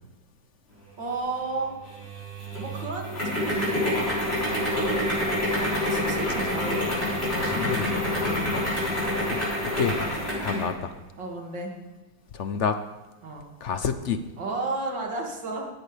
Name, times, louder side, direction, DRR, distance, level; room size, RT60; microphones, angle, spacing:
voice 1, 1.0-1.7 2.6-4.2 5.5-6.9 11.2-11.7 13.2-13.5 14.4-15.7, right 3 dB, 70° right, 0 dB, 2.9 m, -33 dB
sound 1, 1.9-10.7, left 1 dB, 30° left, 6.4 m, -27 dB
voice 2, 7.3-10.1 10.4-10.9 12.3-12.8 13.6-14.2, left 6 dB, 60° left, 9 dB, 0.7 m, -30 dB
18.0 x 13.5 x 3.4 m, 1.2 s
omnidirectional pair, 2.1 m